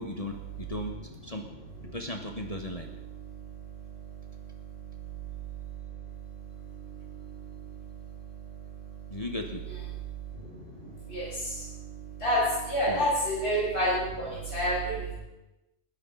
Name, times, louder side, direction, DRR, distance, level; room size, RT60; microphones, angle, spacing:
voice 1, 0.0-1.5 1.9-2.9 9.1-9.6 12.9-13.1, left 1 dB, 30° left, 3 dB, 1.4 m, -36 dB
voice 2, 3.1-9.2 9.9-15.1, equal, 55° left, -9 dB, 6.7 m, -33 dB
21.0 x 13.5 x 4.0 m, 0.98 s
omnidirectional pair, 1.3 m